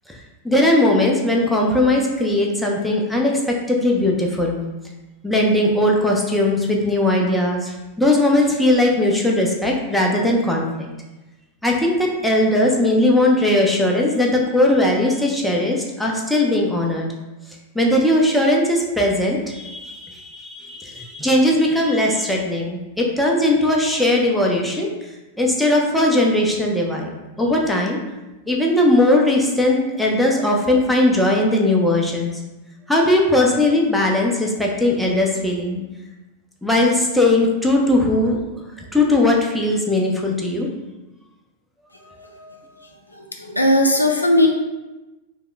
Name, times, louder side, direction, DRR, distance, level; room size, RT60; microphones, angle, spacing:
voice 1, 0.4-4.6 5.2-10.6 11.6-17.1 17.7-24.9 25.4-27.1 27.4-28.0 28.5-32.3 32.9-35.8 36.6-38.5 38.9-40.7 42.1-42.7, left 1 dB, ahead, -2 dB, 0.6 m, -19 dB
voice 2, 43.1-44.5, left 1 dB, 80° left, 2 dB, 0.4 m, -17 dB
2.8 x 2.2 x 3.8 m, 1.1 s
figure-of-eight pair, 90°, 0 cm